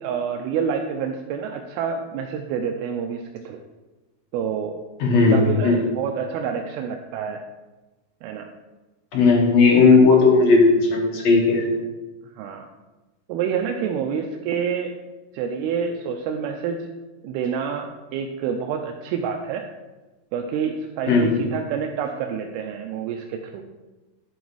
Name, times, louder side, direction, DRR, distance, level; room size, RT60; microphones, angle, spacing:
voice 1, 0.0-3.6 4.3-4.8 5.1-7.4 8.2-8.5 12.3-12.7 13.3-15.0 15.3-16.9 17.2-19.7 20.3-23.6, right 7 dB, 85° right, 3 dB, 2.5 m, -28 dB
voice 2, 5.0-5.8 9.1-11.8 21.1-21.4, left 4 dB, 60° left, -2 dB, 2.0 m, -16 dB
10.0 x 4.0 x 4.6 m, 1.1 s
omnidirectional pair, 4.3 m